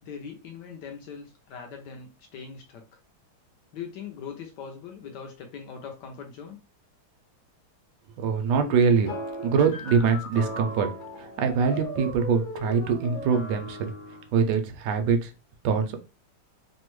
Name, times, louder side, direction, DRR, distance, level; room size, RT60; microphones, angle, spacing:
voice 1, 0.0-3.0 3.7-6.6, left 6 dB, 80° left, 3 dB, 0.9 m, -41 dB
voice 2, 8.2-9.1 9.4-10.9 11.2-13.9 14.3-15.3 15.6-16.0, right 5 dB, 75° right, 5 dB, 0.9 m, -23 dB
sound 1, 9.0-14.3, left 1 dB, 55° left, 1.4 m, -37 dB
3.4 x 2.1 x 3.0 m, 0.30 s
omnidirectional pair, 2.4 m